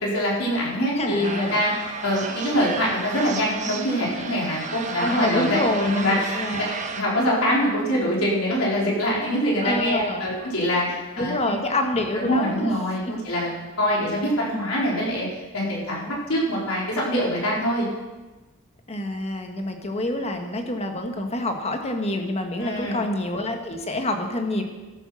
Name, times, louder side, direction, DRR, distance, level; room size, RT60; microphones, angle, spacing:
voice 1, 0.0-1.7 2.0-6.6 6.9-11.3 12.1-13.5 13.8-15.3 15.5-17.9 22.6-23.0, equal, 85° left, -4 dB, 4.1 m, -24 dB
voice 2, 0.9-1.6 5.0-6.7 9.6-10.3 11.2-13.1 18.9-24.6, left 1 dB, 30° left, 4 dB, 1.3 m, -27 dB
sound 1, 1.2-7.0, right 5 dB, 35° right, 1.0 m, -33 dB
14.0 x 8.1 x 6.2 m, 1.2 s
head